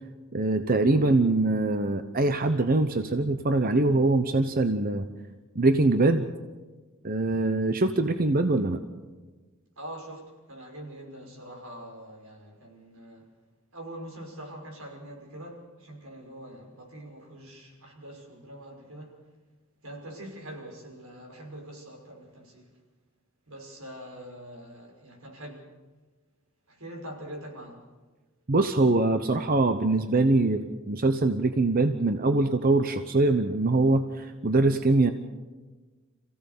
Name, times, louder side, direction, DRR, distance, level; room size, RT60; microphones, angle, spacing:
voice 1, 0.3-5.0 5.5-6.3 7.0-8.8 28.5-35.1, right 2 dB, 45° right, 8 dB, 0.9 m, -23 dB
voice 2, 9.8-13.2 13.7-19.2 19.8-22.7 23.5-25.7 26.7-27.8, right 1 dB, 90° right, 1 dB, 5.8 m, -43 dB
27.5 x 16.0 x 6.9 m, 1.3 s
head